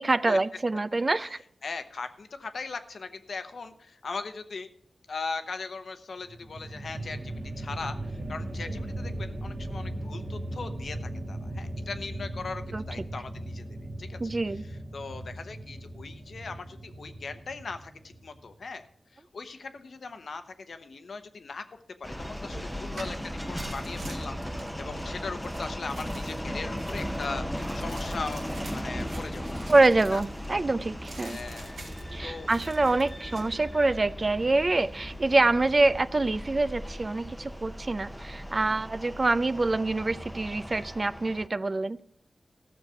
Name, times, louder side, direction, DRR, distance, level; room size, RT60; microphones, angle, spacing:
voice 1, 0.0-1.4 8.6-8.7 12.7-12.8 14.2-14.6 22.5-22.6 29.7-31.4 32.1-42.0, right 2 dB, 40° right, 16 dB, 0.4 m, -25 dB
voice 2, 1.6-4.7 5.1-13.6 14.0-14.2 14.7-18.9 19.1-21.8 22.2-29.6 30.1-30.2 31.2-31.8 32.2-32.5 33.3-33.6, left 4 dB, 75° left, 9 dB, 0.9 m, -39 dB
sound 1, 6.2-18.5, right 1 dB, 70° right, 2.2 m, -38 dB
sound 2, 22.0-41.5, equal, 5° left, 0.8 m, -37 dB
sound 3, 22.7-30.5 31.0-32.2 32.5-33.5, right 2 dB, 85° right, 2.5 m, -47 dB
14.5 x 6.5 x 5.7 m, 0.66 s
wide cardioid pair, 80°, 0 cm